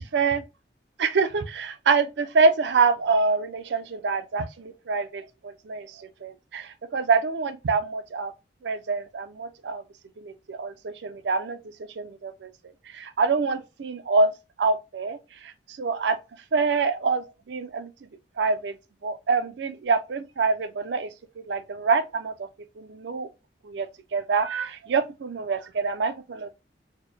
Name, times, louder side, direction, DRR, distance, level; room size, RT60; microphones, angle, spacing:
voice 1, 0.1-0.4 1.0-8.3 8.6-9.8 10.2-11.6 12.0-12.5 12.9-14.3 14.6-16.2 16.5-17.9 18.4-18.8 19.0-21.1 21.5-22.5 22.8-23.3 23.6-26.5, right 4 dB, 70° right, 0.5 m, -26 dB
4.3 x 2.1 x 3.2 m
head